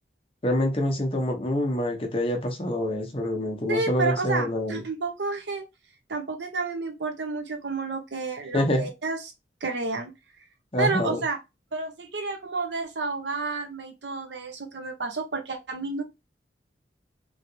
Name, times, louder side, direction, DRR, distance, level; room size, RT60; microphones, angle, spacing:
voice 1, 0.4-4.8 8.5-8.9 10.7-11.2, left 1 dB, 30° left, 0.7 m, -26 dB
voice 2, 3.7-5.6 6.1-9.2 9.6-10.1 10.8-11.4 11.7-16.0, right 3 dB, 85° right, 0.8 m, -30 dB
3.0 x 2.7 x 2.7 m
head